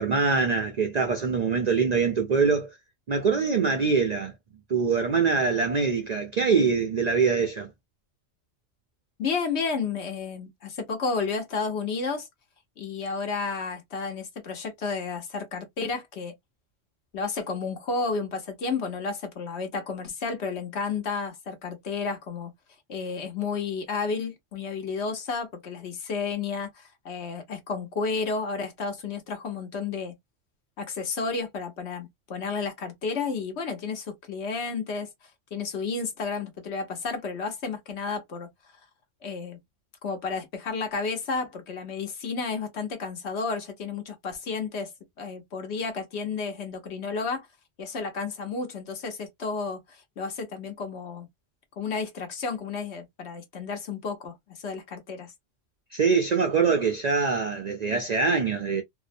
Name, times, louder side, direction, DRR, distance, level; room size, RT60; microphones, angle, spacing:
voice 1, 0.0-2.7 3.1-4.3 4.7-7.7 55.9-58.8, right 5 dB, 60° right, 0.4 m, -24 dB
voice 2, 9.2-12.3 12.8-16.3 17.1-22.5 22.9-30.2 30.8-35.1 35.5-38.5 39.2-39.6 40.0-44.9 45.2-47.5 47.8-51.3 51.8-55.3, left 4 dB, 65° left, 1.1 m, -32 dB
2.7 x 2.1 x 2.5 m
omnidirectional pair, 1.3 m